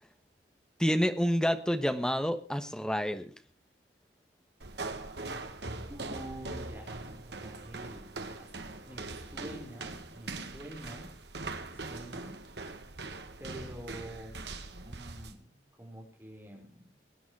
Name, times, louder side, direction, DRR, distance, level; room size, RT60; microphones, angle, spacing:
voice 1, 0.8-3.3, equal, 5° left, 8 dB, 1.3 m, -28 dB
sound 1, 4.6-15.4, right 3 dB, 70° right, 1.8 m, -41 dB
voice 2, 4.9-5.3 5.9-11.1 11.6-12.3 13.4-14.5 14.8-16.9, right 1 dB, 15° right, 1 dB, 4.8 m, -47 dB
22.5 x 9.4 x 4.8 m, 0.36 s
head